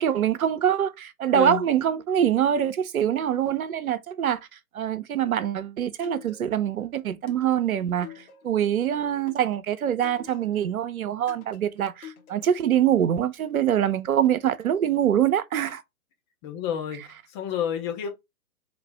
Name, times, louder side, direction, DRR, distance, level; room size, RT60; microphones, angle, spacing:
voice 1, 0.0-4.4 4.7-15.8, right 10 dB, 70° right, 0.7 m, -24 dB
voice 2, 1.3-1.6 16.4-18.1, left 9 dB, 20° left, 0.6 m, -30 dB
sound 1, 6.0-6.8 7.3-8.7 9.3-10.7 11.3-12.7, left 10 dB, 70° left, 1.3 m, -47 dB
4.1 x 2.8 x 3.2 m
figure-of-eight pair, 125°, 44 cm